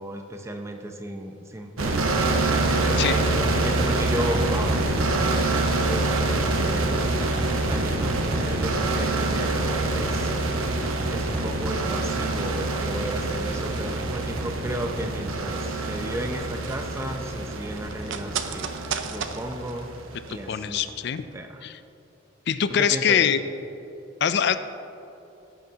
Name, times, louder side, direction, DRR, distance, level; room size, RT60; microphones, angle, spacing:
voice 1, 0.0-2.0 2.4-7.1 7.7-10.3 11.1-18.8 19.0-19.9 20.3-20.8 21.3-21.7 22.7-23.3, right 1 dB, 15° right, 4 dB, 0.6 m, -34 dB
sound 1, 1.8-20.4, right 2 dB, 85° right, 1.0 m, -25 dB
sound 2, 16.4-21.0 21.3-21.4, right 6 dB, 65° right, 0.6 m, -35 dB
voice 2, 20.3-21.2 21.6-21.8 22.5-23.4 24.2-24.6, left 8 dB, 55° left, 12 dB, 0.4 m, -23 dB
16.5 x 9.1 x 2.9 m, 2.9 s
head